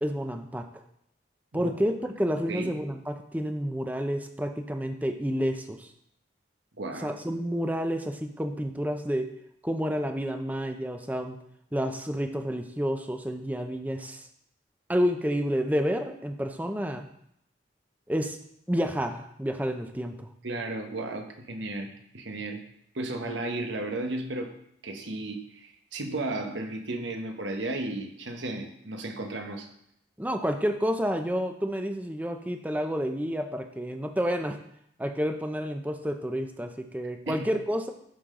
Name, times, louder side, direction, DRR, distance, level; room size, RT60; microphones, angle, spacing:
voice 1, 0.0-0.7 1.5-5.9 7.0-9.3 9.6-11.4 11.7-14.2 14.9-17.0 18.1-18.4 18.7-20.3 30.2-34.6 35.0-37.9, equal, 10° right, 5 dB, 0.6 m, -29 dB
voice 2, 6.8-7.1 20.4-22.6 22.9-29.7 37.3-37.4, right 2 dB, 85° right, 5 dB, 1.1 m, -34 dB
11.5 x 5.7 x 3.8 m, 0.73 s
head